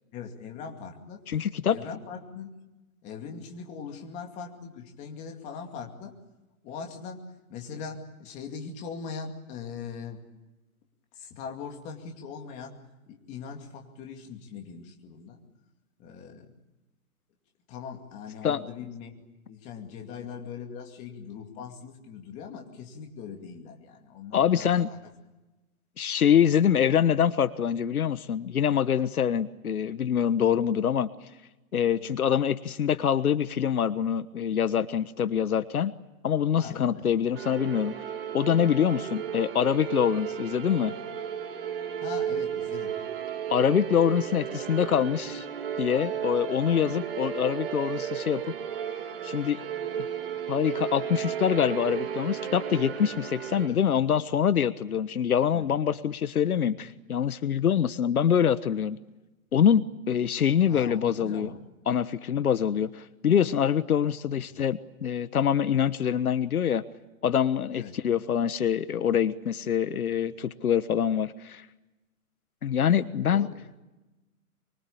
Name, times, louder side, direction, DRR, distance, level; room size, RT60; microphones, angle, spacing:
voice 1, 0.1-1.2 1.6-2.6 3.0-6.2 6.6-10.3 11.1-12.8 13.1-15.4 16.0-16.5 17.7-19.2 19.5-25.0 31.9-32.2 36.6-37.1 42.0-43.0 53.7-53.9 55.5-55.7 60.7-61.6 64.4-64.5 67.7-68.0 70.2-70.4 73.3-73.6, left 6 dB, 15° left, 3 dB, 2.4 m, -41 dB
voice 2, 1.3-1.8 18.4-18.6 24.3-24.9 26.0-31.1 31.7-35.9 36.2-37.9 38.3-40.9 43.5-45.5 45.8-48.5 49.2-49.6 50.5-59.0 59.5-61.5 61.9-66.8 67.2-71.7 72.6-73.5, left 8 dB, 70° left, 14 dB, 1.3 m, -25 dB
sound 1, 37.3-53.7, right 9 dB, 40° right, 2.9 m, -34 dB
25.0 x 24.5 x 8.5 m, 1.1 s
hypercardioid pair, 165°, 45 cm